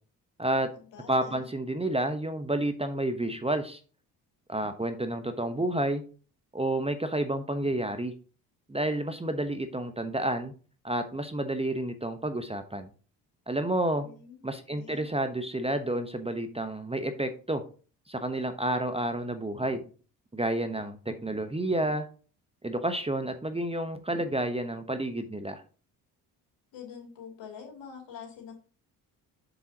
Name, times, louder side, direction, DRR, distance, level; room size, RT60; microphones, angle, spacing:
voice 1, 0.4-0.7 1.1-3.8 4.5-6.0 6.5-8.1 8.7-10.5 10.8-12.9 13.5-14.1 14.4-17.6 18.1-19.8 20.3-22.1 22.6-25.6, right 1 dB, 10° right, 9 dB, 1.0 m, -30 dB
voice 2, 0.9-1.5 13.9-15.1 26.7-28.5, left 7 dB, 65° left, 1 dB, 2.8 m, -46 dB
7.1 x 7.1 x 2.9 m, 0.37 s
hypercardioid pair, 50°, 47 cm